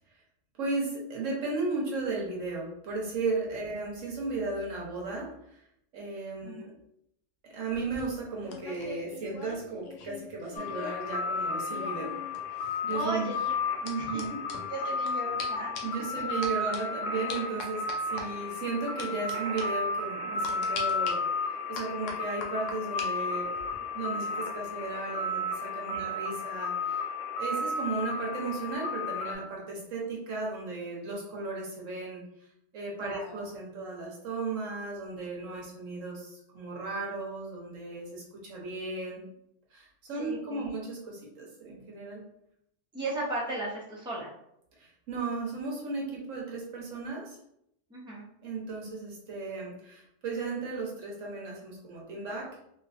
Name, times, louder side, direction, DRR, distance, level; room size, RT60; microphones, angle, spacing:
voice 1, 0.6-5.6 5.9-6.7 7.4-12.1 12.8-13.3 13.8-14.4 14.8-14.9 15.8-21.2 21.7-23.5 23.9-27.0 27.4-32.2 32.7-39.2 39.7-42.2 44.8-47.4 48.4-52.5, right 3 dB, 85° right, -3 dB, 1.3 m, -35 dB
sound 1, 7.7-11.1 11.4-15.1 15.4-15.5 15.7-16.0 16.4-16.8 17.3-18.2 19.0-19.3 19.6-19.7 20.4-21.1 21.7-23.1 23.4-23.8, left 4 dB, 80° left, 1.0 m, -42 dB
sound 2, 10.6-29.4, left 3 dB, 50° left, 0.6 m, -33 dB
voice 2, 12.9-13.5 14.0-14.2 14.7-15.7 25.9-26.1 33.0-33.4 40.2-40.7 42.9-44.3 47.9-48.2, right 2 dB, 5° right, -6 dB, 0.7 m, -36 dB
3.1 x 3.1 x 2.5 m, 0.76 s
omnidirectional pair, 1.3 m